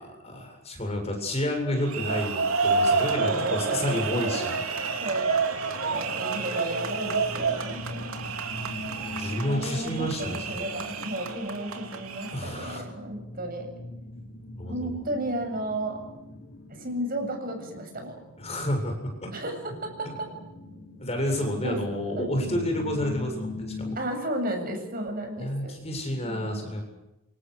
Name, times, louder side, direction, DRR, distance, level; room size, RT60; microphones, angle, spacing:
voice 1, 0.2-4.6 8.9-10.6 12.3-12.8 14.6-14.9 18.4-19.3 20.0-20.1 21.0-24.0 25.4-26.8, left 1 dB, 30° left, 3 dB, 7.7 m, -30 dB
sound 1, 1.7-12.8, right 4 dB, 85° right, 3.1 m, -29 dB
voice 2, 3.2-4.6 5.0-5.5 5.7-8.2 9.4-13.7 14.7-16.0 16.7-18.1 19.3-20.3 21.6-21.8 22.2-22.6 24.0-25.8 26.2-26.8, right 1 dB, 45° right, 5 dB, 7.8 m, -33 dB
sound 2, 4.6-24.0, left 1 dB, 70° left, 6.7 m, -41 dB
28.5 x 27.0 x 6.6 m, 0.92 s
head